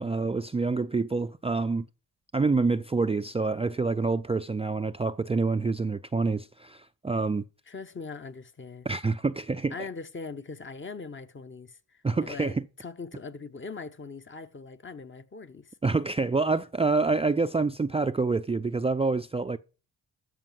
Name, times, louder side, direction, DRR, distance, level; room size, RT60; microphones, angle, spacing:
voice 1, 0.0-1.9 2.3-7.4 8.9-9.7 12.0-12.6 15.8-19.6, right 3 dB, 15° right, 0.4 m, -27 dB
voice 2, 7.7-8.9 9.7-15.7, left 4 dB, 30° left, 1.0 m, -41 dB
13.0 x 5.1 x 7.6 m
cardioid pair, 70°, 37 cm